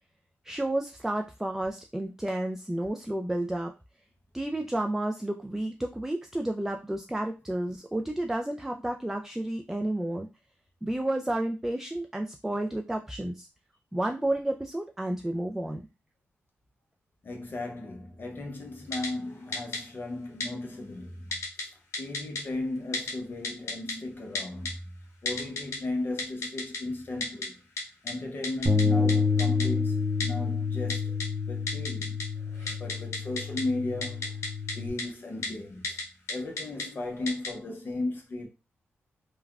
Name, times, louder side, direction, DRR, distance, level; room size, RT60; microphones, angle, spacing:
voice 1, 0.4-3.7 4.3-10.3 10.8-13.5 13.9-15.8 32.5-32.8, right 1 dB, 5° right, 0.3 m, -31 dB
voice 2, 17.2-24.8 25.2-27.6 28.0-32.2 32.7-34.4 34.7-36.0 36.3-38.5, left 2 dB, 45° left, 0.7 m, -36 dB
Typing, 18.9-19.1 19.5-19.8 20.4-20.5 21.3-21.6 21.9-22.4 22.9-23.1 23.4-23.9 24.3-24.7 25.3-25.8 26.2-26.8 27.2-27.5 27.8-27.9 28.1-28.2 28.4-28.8 29.1-29.2 29.4-29.7 30.2-30.3 30.9-31.3 31.7-32.2 32.5-33.6 34.0-34.7 35.0-35.1 35.4-35.5 35.8-36.0 36.3-36.8 37.3-37.5, left 3 dB, 75° left, 0.9 m, -31 dB
Bass guitar, 28.7-34.9, left 4 dB, 30° right, 0.7 m, -28 dB
3.3 x 2.2 x 2.3 m
cardioid pair, 70°, 5 cm